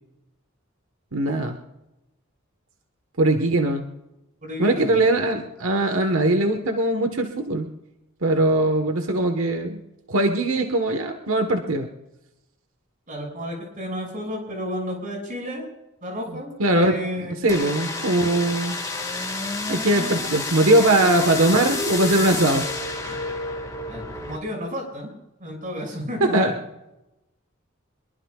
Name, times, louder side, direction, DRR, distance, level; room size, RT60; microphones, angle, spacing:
voice 1, 1.1-1.6 3.2-3.8 4.6-7.7 8.2-9.8 10.1-11.9 16.6-17.0 17.4-18.8 19.7-22.7 23.0-23.2 26.2-26.5, right 1 dB, 90° right, 5 dB, 1.4 m, -21 dB
voice 2, 4.4-5.0 13.1-15.6 16.0-17.5 23.1-23.2 23.9-25.1 25.4-26.5, equal, 40° right, 1 dB, 6.4 m, -32 dB
sound 1, 17.5-24.4, left 3 dB, 15° left, 2.0 m, -29 dB
23.5 x 22.5 x 2.5 m, 0.94 s
head